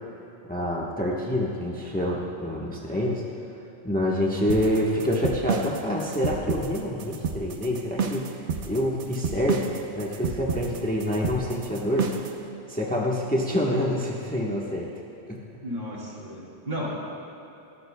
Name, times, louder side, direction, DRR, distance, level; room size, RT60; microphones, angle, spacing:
voice 1, 0.5-3.2 3.8-12.1 12.7-14.9 15.3-15.4, equal, 10° left, -4 dB, 1.2 m, -27 dB
sound 1, 4.5-12.4, right 5 dB, 90° right, 1.2 m, -30 dB
voice 2, 15.6-16.9, equal, 50° right, -4 dB, 3.2 m, -33 dB
22.5 x 15.5 x 2.3 m, 3.0 s
omnidirectional pair, 1.1 m